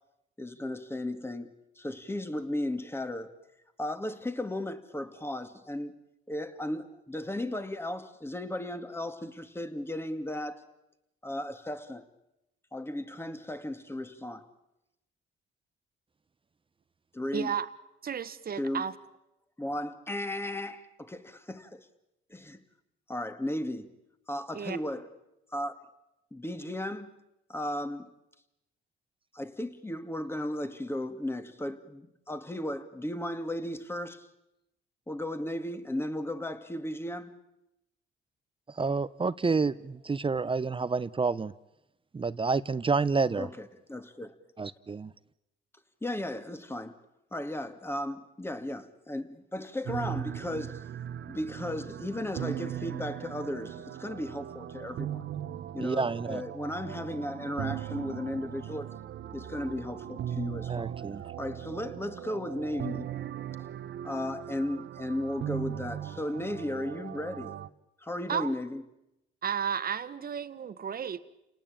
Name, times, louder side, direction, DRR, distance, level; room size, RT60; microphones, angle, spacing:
voice 1, 0.4-3.3 3.8-10.6 11.2-12.1 12.7-14.5 17.1-17.5 18.6-18.8 19.6-21.9 22.3-22.6 23.1-23.9 24.3-25.1 25.5-25.8 26.3-27.1 27.5-28.1 29.3-34.3 35.1-37.3 43.4-43.5 43.9-44.3 46.0-47.0 47.3-50.8 51.3-55.2 55.7-58.9 59.3-60.9 61.4-63.1 63.6-63.7 64.0-67.5 68.0-68.8, left 1 dB, 10° left, 9 dB, 2.3 m, -35 dB
voice 2, 17.3-17.7 18.0-18.9 24.5-24.8 68.3-68.5 69.4-71.2, right 8 dB, 50° right, 13 dB, 1.5 m, -33 dB
voice 3, 38.7-41.5 42.1-43.5 44.6-45.1 55.8-56.4 60.7-61.3, right 4 dB, 25° right, 16 dB, 0.9 m, -29 dB
sound 1, 49.9-67.7, right 11 dB, 65° right, 1.1 m, -39 dB
29.5 x 19.0 x 8.8 m, 0.89 s
cardioid pair, 90°, 20 cm